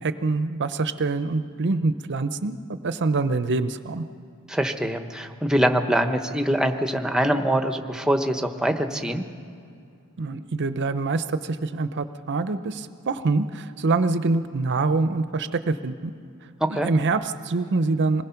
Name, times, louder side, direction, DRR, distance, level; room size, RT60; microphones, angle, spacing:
voice 1, 0.0-4.0 10.2-16.1 16.7-18.2, right 3 dB, 50° right, 11 dB, 0.7 m, -25 dB
voice 2, 4.5-9.2 16.7-16.9, equal, 5° right, 6 dB, 1.0 m, -24 dB
26.5 x 20.0 x 5.8 m, 2.5 s
head